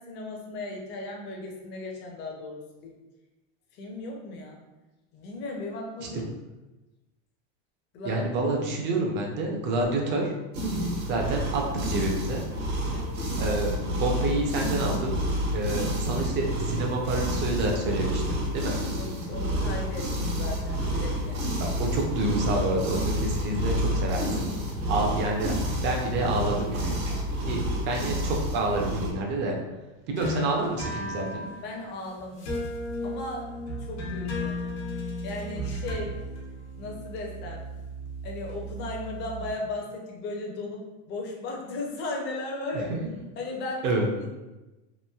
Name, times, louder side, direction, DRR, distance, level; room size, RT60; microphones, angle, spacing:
voice 1, 0.0-2.9 3.8-4.6 5.1-6.3 7.9-8.2 12.9-13.2 19.0-21.5 31.6-32.7 33.0-34.8 35.2-36.1 36.8-37.7 38.2-40.8 41.1-42.9 43.4-43.8 44.2-44.3, left 2 dB, 35° left, 0 dB, 0.5 m, -36 dB
voice 2, 8.0-10.3 11.1-12.4 13.4-15.2 15.5-18.8 21.6-24.5 24.9-25.5 25.8-27.0 27.4-29.6 30.1-31.4 42.7-42.9 43.8-44.1, right 2 dB, 35° right, 1 dB, 0.5 m, -28 dB
sound 1, 10.5-29.1, equal, 85° right, 1.1 m, -29 dB
sound 2, 30.2-39.5, left 1 dB, 90° left, 1.0 m, -35 dB
3.0 x 2.5 x 2.2 m, 1.1 s
supercardioid pair, 145°, 33 cm